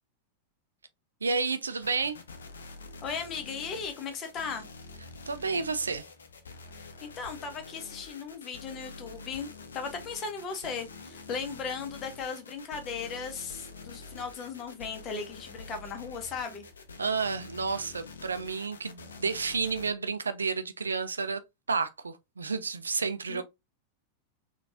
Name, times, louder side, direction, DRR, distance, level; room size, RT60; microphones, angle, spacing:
voice 1, 1.2-2.2 5.3-6.1 17.0-21.4 21.7-23.4, right 4 dB, 75° right, 0.4 m, -31 dB
sound 1, 1.8-19.9, left 4 dB, 70° left, 0.5 m, -47 dB
voice 2, 3.0-4.7 6.7-16.6 23.3-23.4, left 5 dB, 30° left, 0.9 m, -37 dB
3.8 x 2.4 x 2.5 m
figure-of-eight pair, 90°, 0 cm